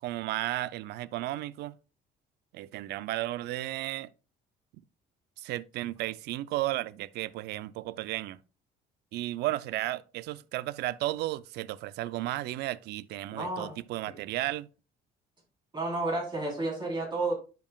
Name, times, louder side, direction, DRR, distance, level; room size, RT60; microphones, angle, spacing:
voice 1, 0.0-1.7 2.5-4.1 5.4-8.4 9.1-14.7, right 16 dB, 75° right, 0.4 m, -34 dB
voice 2, 13.3-13.8 14.1-14.2 15.7-17.3, right 2 dB, 25° right, 3.5 m, -31 dB
10.5 x 5.3 x 2.3 m
cardioid pair, 110°, 17 cm